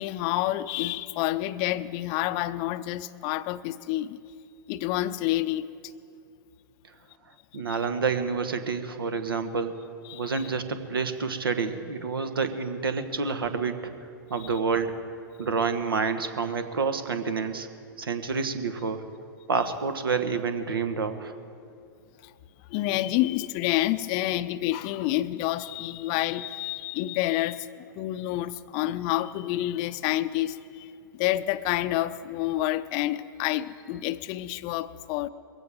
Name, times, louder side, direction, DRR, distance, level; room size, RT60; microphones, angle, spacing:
voice 1, 0.0-4.2 4.7-5.7 10.1-10.5 22.2-22.3 22.7-27.7 28.0-35.3, left 15 dB, 40° left, 15 dB, 0.5 m, -28 dB
voice 2, 7.5-9.8 10.1-13.9 14.3-15.0 15.4-17.7 18.0-19.0 19.5-21.3, right 5 dB, 80° right, 9 dB, 1.3 m, -28 dB
22.0 x 16.0 x 3.6 m, 2.6 s
figure-of-eight pair, 105°, 12 cm